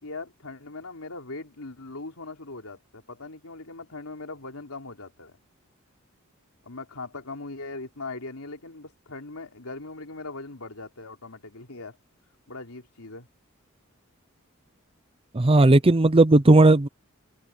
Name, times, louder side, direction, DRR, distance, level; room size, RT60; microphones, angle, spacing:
voice 1, 0.0-5.4 6.6-12.0 12.5-13.3, left 3 dB, 90° left, 3.6 m, -40 dB
voice 2, 15.3-16.9, right 2 dB, 25° right, 0.6 m, -16 dB
open air
head